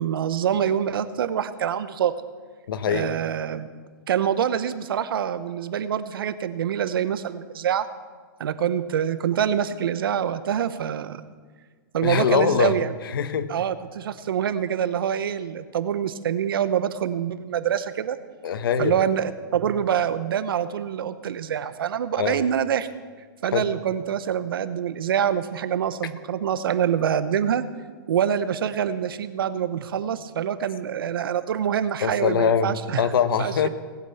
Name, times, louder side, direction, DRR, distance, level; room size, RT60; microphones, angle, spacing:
voice 1, 0.0-2.1 2.9-3.7 4.1-7.9 8.4-11.2 11.9-12.9 13.5-18.2 18.8-22.9 23.4-27.6 28.1-33.0 33.4-33.7, right 9 dB, 75° right, 12 dB, 0.9 m, -25 dB
voice 2, 2.7-3.1 12.0-12.8 13.0-13.5 18.4-19.0 22.2-22.4 23.5-23.7 32.0-33.7, left 7 dB, 70° left, 12 dB, 1.1 m, -23 dB
18.5 x 8.2 x 5.8 m, 1.6 s
hypercardioid pair, 160°, 12 cm